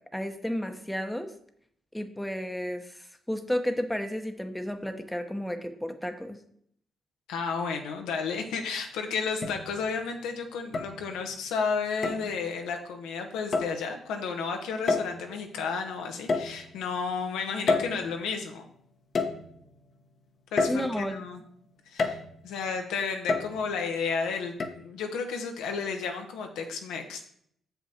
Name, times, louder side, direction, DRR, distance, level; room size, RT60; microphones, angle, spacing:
voice 1, 0.1-1.3 1.9-6.4 20.7-21.2, equal, 5° left, 6 dB, 0.9 m, -32 dB
voice 2, 7.3-18.6 20.5-21.4 21.9-22.2 22.4-27.2, left 5 dB, 90° left, 4 dB, 1.1 m, -32 dB
sound 1, 8.3-8.4 9.4-10.0 10.7-11.4 12.0-12.4 13.5-13.8 14.9-15.4 16.3-17.0 17.7-18.5 19.1-19.8 20.6-21.3 22.0-22.5 23.3-23.9 24.6-24.7, left 4 dB, 45° left, 1.0 m, -29 dB
7.2 x 5.7 x 4.3 m, 0.66 s
cardioid pair, 90°, 0 cm